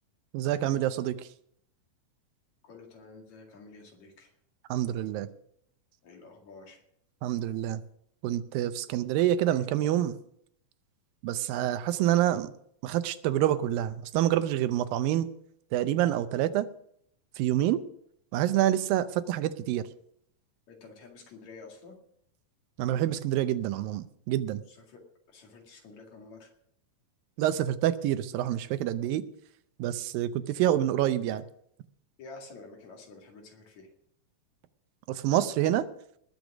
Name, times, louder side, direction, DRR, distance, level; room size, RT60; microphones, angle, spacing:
voice 1, 0.3-1.3 4.7-5.3 7.2-7.8 8.2-10.2 11.2-12.5 12.8-15.3 15.7-16.7 17.4-17.8 18.3-19.9 22.8-24.6 27.4-29.2 29.8-31.4 35.1-35.9, right 12 dB, 85° right, 12 dB, 2.5 m, -27 dB
voice 2, 2.6-4.3 6.0-6.8 9.5-9.6 20.7-21.9 24.7-25.0 25.3-26.5 32.2-33.9, left 3 dB, 55° left, 1 dB, 3.3 m, -49 dB
20.0 x 6.8 x 6.1 m, 0.70 s
omnidirectional pair, 4.0 m